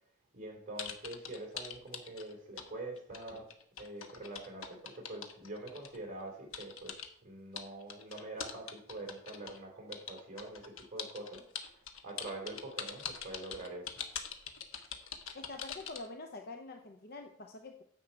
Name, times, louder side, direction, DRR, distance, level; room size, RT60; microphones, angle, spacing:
voice 1, 0.3-3.5 3.8-14.0, right 2 dB, 35° right, 0 dB, 3.2 m, -45 dB
sound 1, 0.8-2.7 3.0-6.0 6.5-7.1 7.6-9.6 9.9-16.1, left 7 dB, 70° left, 1.2 m, -43 dB
voice 2, 15.3-17.8, left 3 dB, 45° left, 5 dB, 0.6 m, -46 dB
9.9 x 7.4 x 4.4 m, 0.64 s
head